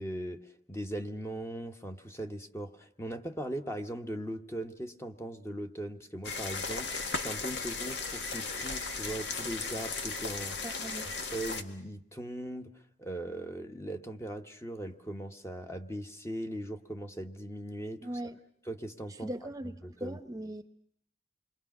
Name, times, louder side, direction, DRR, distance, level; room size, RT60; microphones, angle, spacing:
voice 1, 0.0-10.6 11.0-12.7 13.0-18.1 18.7-19.3 19.8-20.2, right 1 dB, 15° left, 6 dB, 1.0 m, -39 dB
sound 1, 6.2-11.6, left 4 dB, 85° left, 1.9 m, -36 dB
voice 2, 10.6-11.1 18.0-18.4 19.2-20.7, right 1 dB, 20° right, 9 dB, 0.9 m, -40 dB
28.0 x 22.5 x 6.0 m, 0.67 s
head